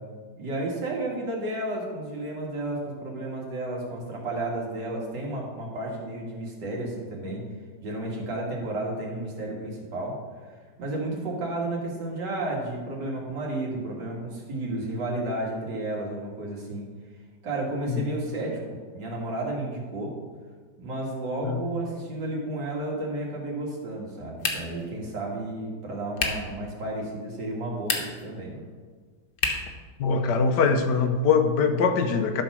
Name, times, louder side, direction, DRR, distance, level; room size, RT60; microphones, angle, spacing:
voice 1, 0.4-7.4 7.8-10.2 10.8-16.9 17.4-20.2 20.8-28.6, right 2 dB, 80° right, -3 dB, 2.7 m, -32 dB
sound 1, 24.4-24.9 26.2-26.5 27.7-28.3 29.4-29.8, left 4 dB, 60° left, 1.5 m, -29 dB
voice 2, 30.0-32.4, left 5 dB, 75° left, 7 dB, 1.4 m, -22 dB
11.5 x 4.5 x 6.2 m, 1.5 s
omnidirectional pair, 1.8 m